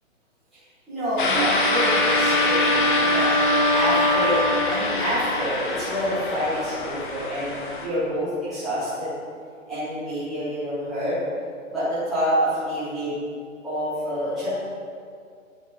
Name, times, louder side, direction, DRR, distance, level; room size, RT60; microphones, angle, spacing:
voice 1, 0.9-3.3 3.7-4.4 4.7-9.1 9.7-11.2 11.7-13.3 13.6-14.5, equal, ahead, -18 dB, 0.5 m, -27 dB
sound 1, 1.2-7.9, left 3 dB, 40° left, 1.0 m, -26 dB
sound 2, 1.3-5.2, equal, 45° right, 1.6 m, -23 dB
9.4 x 4.1 x 5.3 m, 2.2 s
hypercardioid pair, 160°, 40 cm